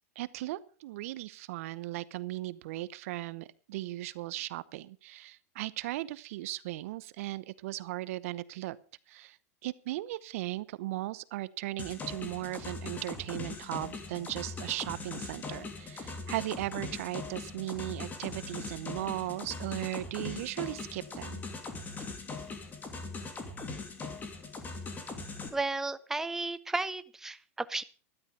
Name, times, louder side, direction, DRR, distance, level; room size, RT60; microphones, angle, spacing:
voice 1, 0.2-8.8 9.1-9.4 9.6-21.4, right 17 dB, 65° right, 18 dB, 0.8 m, -37 dB
sound 1, 11.8-25.5, left 3 dB, 20° left, 2.8 m, -41 dB
voice 2, 25.5-27.8, right 3 dB, 5° right, 13 dB, 0.6 m, -33 dB
12.5 x 11.0 x 5.6 m, 0.38 s
supercardioid pair, 135°, 8 cm